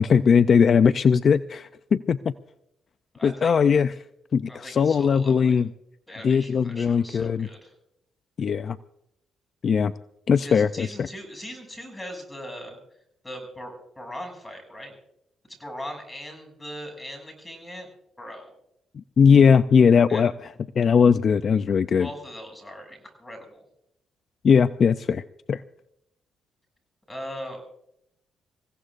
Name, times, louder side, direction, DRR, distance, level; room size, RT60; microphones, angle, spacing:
voice 1, 0.0-2.3 3.2-3.9 4.3-5.7 6.2-7.5 8.4-8.8 9.6-9.9 10.3-11.1 18.9-20.3 20.8-22.1 24.4-25.6, left 6 dB, 50° left, 13 dB, 0.4 m, -19 dB
voice 2, 3.1-3.6 4.5-5.6 6.1-7.7 10.4-12.8 13.2-14.9 15.5-17.9 18.2-18.5 20.1-20.2 22.0-23.7 27.1-27.6, equal, 10° left, 3 dB, 7.0 m, -39 dB
28.0 x 16.5 x 2.5 m, 0.78 s
cardioid pair, 90°, 0 cm